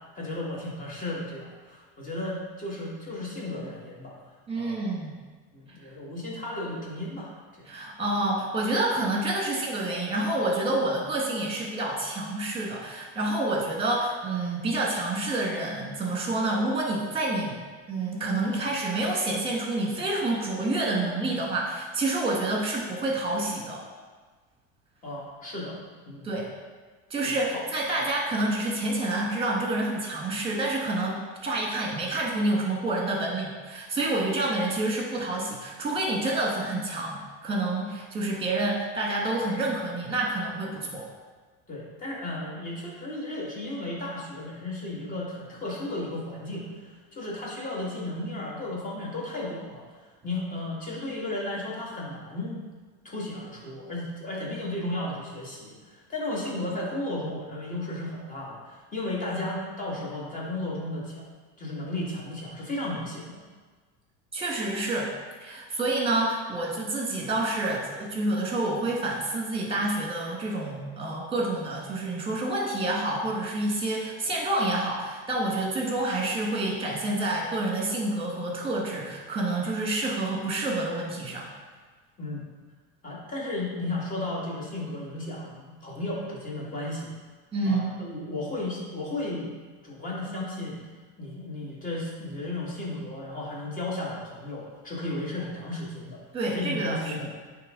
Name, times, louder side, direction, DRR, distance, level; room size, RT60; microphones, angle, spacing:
voice 1, 0.2-4.2 4.5-4.8 5.5-7.7 25.0-25.8 26.1-26.3 27.2-27.6 41.7-49.8 50.2-52.6 53.0-55.8 56.1-61.3 61.6-63.4 82.2-82.5 83.0-87.1 87.6-89.5 89.8-90.8 91.2-97.3, left 2 dB, 25° left, -4 dB, 1.9 m, -34 dB
voice 2, 4.5-5.2 7.6-17.6 17.9-23.8 26.2-26.5 27.1-41.0 64.3-65.1 65.4-81.5 87.5-88.0 96.3-97.2, right 2 dB, 15° right, -2 dB, 1.6 m, -28 dB
9.1 x 3.4 x 3.8 m, 1.4 s
supercardioid pair, 135°, 33 cm